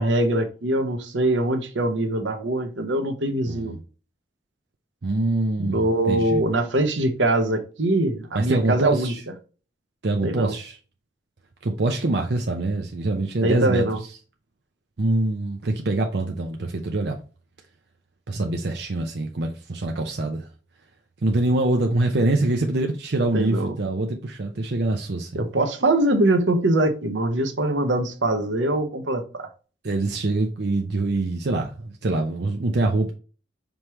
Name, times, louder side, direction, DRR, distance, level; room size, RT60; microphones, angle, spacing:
voice 1, 0.0-3.7 5.6-9.1 10.2-10.5 13.4-14.0 23.3-23.7 25.3-29.5, right 1 dB, 85° right, 1.0 m, -23 dB
voice 2, 3.4-3.8 5.0-6.5 8.3-9.2 10.0-10.8 11.6-13.8 15.0-17.2 18.3-20.5 21.2-25.4 29.8-33.1, right 2 dB, 60° right, 0.6 m, -24 dB
5.3 x 3.1 x 3.1 m
head